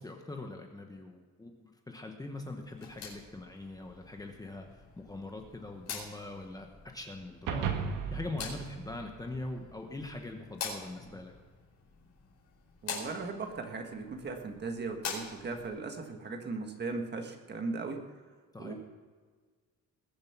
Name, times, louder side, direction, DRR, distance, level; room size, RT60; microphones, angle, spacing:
voice 1, 0.0-7.7 8.1-11.3 18.5-18.7, left 2 dB, 10° left, 3 dB, 1.0 m, -42 dB
sound 1, 2.6-15.7, left 5 dB, 55° left, 4.8 m, -46 dB
sound 2, 7.5-10.0, right 6 dB, 85° right, 1.7 m, -36 dB
voice 2, 12.8-18.0 18.6-18.7, right 3 dB, 35° right, 4 dB, 1.6 m, -38 dB
21.0 x 7.5 x 5.9 m, 1.6 s
cardioid pair, 180°, 31 cm